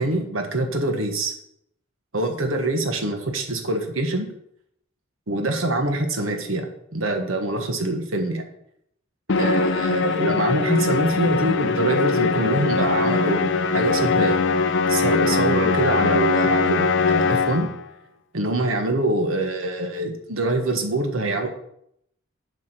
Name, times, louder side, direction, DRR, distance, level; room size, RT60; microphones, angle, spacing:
voice 1, 0.0-1.3 2.1-4.3 5.3-8.5 9.4-14.4 14.9-17.7 18.3-21.5, right 2 dB, 80° right, 5 dB, 1.4 m, -24 dB
Musical instrument, 9.3-17.8, left 4 dB, 60° left, 0.6 m, -21 dB
7.8 x 4.9 x 6.1 m, 0.74 s
head